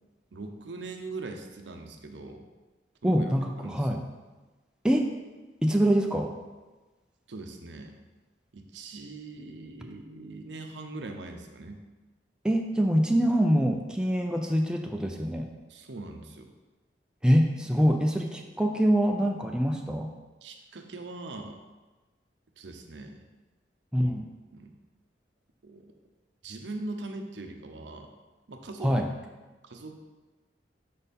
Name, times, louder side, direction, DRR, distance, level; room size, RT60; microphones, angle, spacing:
voice 1, 0.3-2.4 3.0-3.9 7.3-8.0 8.5-11.8 15.7-16.5 20.4-21.6 22.6-23.2 24.0-24.2 24.5-24.7 25.6-25.9 26.4-28.1 28.5-28.9 29.6-30.0, right 2 dB, 90° right, 5 dB, 0.7 m, -41 dB
voice 2, 3.0-4.0 4.8-5.1 5.6-6.3 12.4-15.5 17.2-20.1 23.9-24.3 28.8-29.1, equal, 5° right, 2 dB, 0.4 m, -24 dB
5.4 x 4.2 x 5.2 m, 1.2 s
head